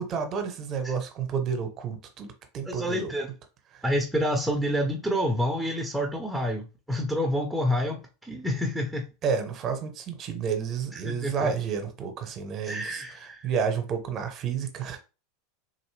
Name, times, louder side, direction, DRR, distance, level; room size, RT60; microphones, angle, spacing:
voice 1, 0.0-2.3 2.5-3.1 9.2-13.0 13.4-15.0, right 6 dB, 40° right, 1.0 m, -30 dB
voice 2, 2.6-3.3 3.8-9.0 10.9-11.5 12.6-13.5, equal, 5° right, 0.8 m, -28 dB
4.0 x 2.6 x 3.2 m
figure-of-eight pair, 85°, 0 cm